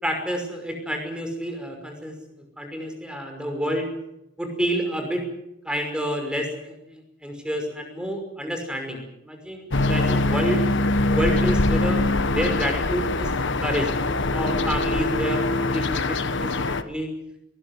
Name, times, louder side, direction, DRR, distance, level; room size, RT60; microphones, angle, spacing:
voice 1, 0.0-2.1 2.6-3.9 4.4-5.3 5.6-10.6 11.1-13.9 14.3-17.1, equal, 5° right, 4 dB, 5.6 m, -29 dB
sound 1, 9.7-16.8, left 2 dB, 65° left, 1.3 m, -23 dB
23.0 x 19.5 x 8.0 m, 0.84 s
head